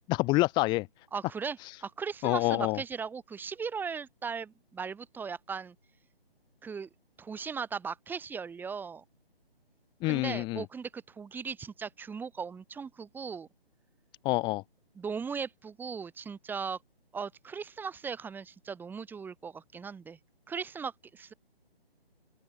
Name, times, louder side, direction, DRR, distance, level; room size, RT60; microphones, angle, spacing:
voice 1, 0.1-0.9 1.6-1.8 2.2-2.8 10.0-10.6 14.2-14.6, left 22 dB, 15° left, 2.1 m, -27 dB
voice 2, 1.1-5.7 6.6-6.9 7.2-9.0 10.0-13.5 14.9-16.8 17.1-20.2 20.5-21.3, right 6 dB, 5° right, 6.8 m, -38 dB
open air
figure-of-eight pair, 145°, 30 cm